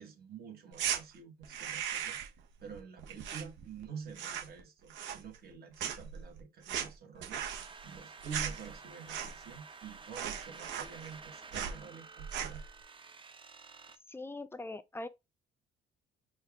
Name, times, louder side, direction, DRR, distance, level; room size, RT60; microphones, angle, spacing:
voice 1, 0.0-2.2 2.6-7.4 7.8-12.6, right 6 dB, 55° right, 1.7 m, -48 dB
sound 1, 0.7-1.0 1.4-2.4 2.7-3.8 4.1-4.6 4.9-5.5 5.8-9.6 9.8-9.9 10.1-11.2 11.5-11.8 12.2-12.7, right 8 dB, 70° right, 1.1 m, -38 dB
sound 2, 7.4-14.0, right 4 dB, 25° right, 0.8 m, -51 dB
voice 2, 14.1-15.1, left 2 dB, 10° left, 0.6 m, -41 dB
4.2 x 2.5 x 3.6 m
hypercardioid pair, 65°, 20 cm